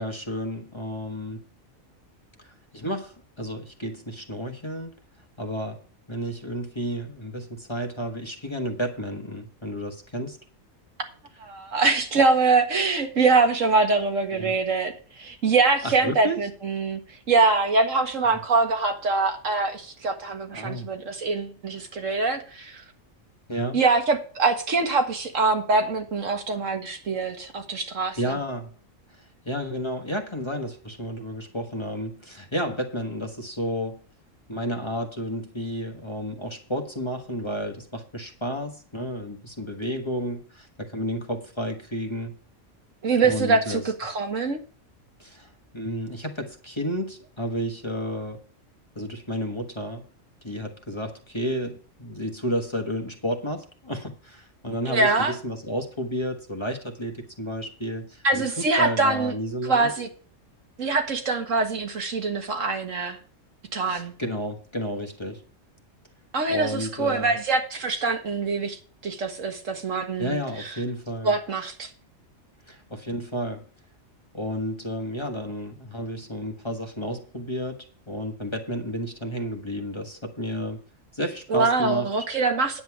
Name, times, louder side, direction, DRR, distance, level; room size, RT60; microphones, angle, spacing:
voice 1, 0.0-1.4 2.4-4.9 5.4-5.8 6.1-10.4 14.3-14.5 15.8-16.4 18.3-18.4 20.5-20.9 23.5-23.8 28.2-28.7 29.2-34.0 34.5-42.4 43.2-43.8 45.2-48.4 48.9-50.1 50.4-59.9 63.9-65.4 66.5-67.4 70.2-71.3 72.7-73.7 74.3-80.8 81.1-82.1, equal, 20° left, 1.3 m, -31 dB
voice 2, 11.4-17.0 17.3-22.8 23.7-28.4 43.0-44.6 54.9-55.3 58.2-59.3 59.6-60.1 60.8-63.2 63.7-64.1 66.3-70.8 71.2-71.9 81.5-82.8, right 3 dB, 75° right, 2.0 m, -24 dB
9.9 x 7.9 x 4.7 m
omnidirectional pair, 1.4 m